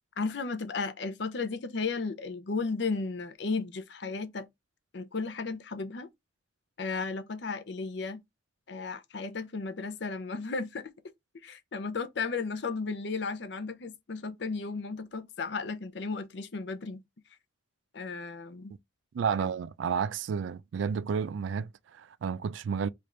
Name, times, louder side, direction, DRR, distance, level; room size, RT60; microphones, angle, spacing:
voice 1, 0.2-4.5 4.9-6.1 6.8-8.2 8.7-10.9 11.4-17.0 17.9-18.7, left 4 dB, 60° left, 0.6 m, -34 dB
voice 2, 19.1-22.9, right 6 dB, 75° right, 0.3 m, -31 dB
3.3 x 2.5 x 4.2 m
head